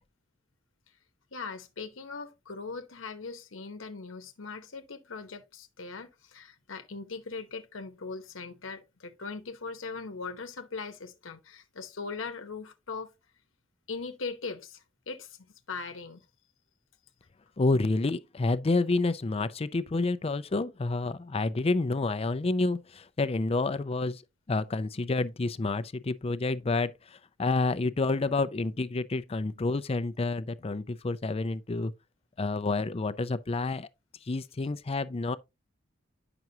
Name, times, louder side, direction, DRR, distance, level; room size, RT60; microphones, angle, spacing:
voice 1, 1.3-13.1 13.9-16.3, left 4 dB, 85° left, 0.9 m, -40 dB
voice 2, 17.6-24.2 24.5-31.9 32.4-33.9 34.3-35.4, left 3 dB, 30° left, 0.5 m, -29 dB
9.2 x 6.0 x 2.7 m
head